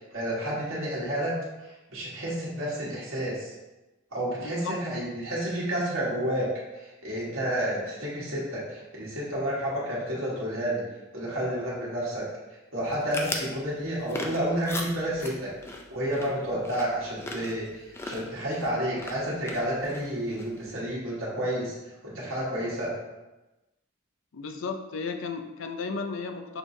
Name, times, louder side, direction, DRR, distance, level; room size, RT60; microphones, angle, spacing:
voice 1, 0.1-1.3 1.9-3.5 4.1-6.5 6.8-10.8 11.1-12.2 12.7-15.5 15.9-21.7 22.0-22.9, right 1 dB, 70° right, -7 dB, 1.5 m, -30 dB
voice 2, 4.4-4.7 24.3-26.6, left 4 dB, 70° left, 6 dB, 0.5 m, -34 dB
sound 1, 12.8-20.7, left 2 dB, 10° left, 0.4 m, -40 dB
6.3 x 3.1 x 2.7 m, 1.1 s
head